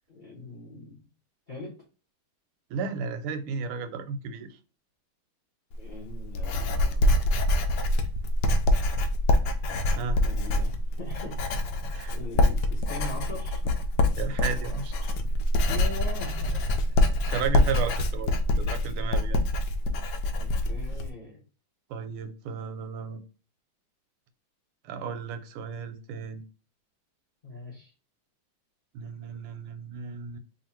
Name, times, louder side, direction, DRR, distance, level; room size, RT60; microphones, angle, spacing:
voice 1, 0.1-1.1 1.5-1.7 5.8-7.0 10.2-11.4 12.1-13.8 15.7-17.2 20.3-21.4 27.4-27.9, left 1 dB, 45° left, 0.6 m, -41 dB
voice 2, 2.7-4.6 10.0-10.2 11.8-12.1 14.2-15.1 17.3-19.4 21.9-23.2 24.8-26.4 28.9-30.4, right 5 dB, 90° right, 1.5 m, -34 dB
Writing, 5.7-21.1, left 1 dB, 75° left, 1.0 m, -25 dB
3.2 x 2.6 x 4.2 m
omnidirectional pair, 2.3 m